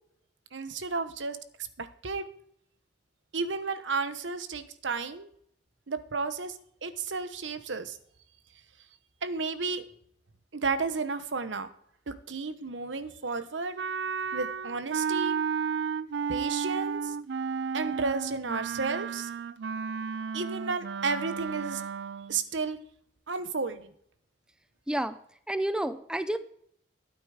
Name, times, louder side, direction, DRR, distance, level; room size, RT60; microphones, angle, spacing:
voice 1, 0.5-1.4 1.8-2.2 3.3-5.3 5.9-8.0 9.2-9.8 10.5-11.7 12.1-13.8 14.3-15.4 16.3-17.1 17.7-19.3 20.3-21.8 22.3-22.8 23.3-23.9, right 4 dB, 85° right, 11 dB, 1.0 m, -32 dB
Wind instrument woodwind instrument, 13.8-22.4, right 6 dB, 65° right, 0.4 m, -33 dB
voice 2, 24.9-25.2 25.5-26.4, right 1 dB, 5° right, 11 dB, 0.6 m, -29 dB
12.5 x 9.1 x 5.0 m, 0.67 s
head